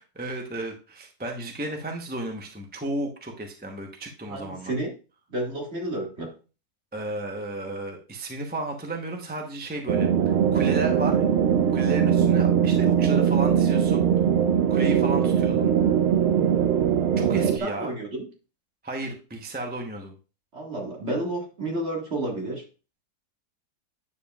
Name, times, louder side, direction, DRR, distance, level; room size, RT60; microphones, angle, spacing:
voice 1, 0.0-4.7 6.9-10.1 10.5-11.3 11.7-14.1 14.7-15.7 17.2-17.9 18.8-20.1, right 2 dB, 10° right, 2 dB, 0.8 m, -33 dB
voice 2, 4.3-4.9 5.3-6.3 17.4-18.3 20.5-22.6, right 1 dB, 50° right, -1 dB, 2.1 m, -31 dB
sound 1, 9.9-17.6, right 8 dB, 65° right, 0.7 m, -21 dB
9.5 x 7.1 x 2.4 m, 0.34 s
omnidirectional pair, 1.6 m